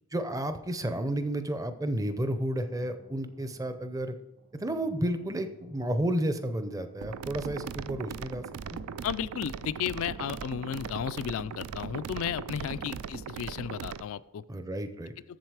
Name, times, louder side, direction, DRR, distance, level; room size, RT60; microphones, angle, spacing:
voice 1, 0.1-4.1 4.5-8.8 12.8-12.9 14.5-15.1, right 1 dB, 15° right, 10 dB, 0.5 m, -32 dB
sound 1, 2.4-10.1, right 1 dB, 65° right, 2.7 m, -56 dB
sound 2, 7.0-14.0, right 6 dB, 80° right, 0.4 m, -39 dB
voice 2, 9.0-14.4, left 8 dB, 60° left, 16 dB, 0.3 m, -34 dB
7.7 x 7.2 x 4.8 m, 1.0 s
head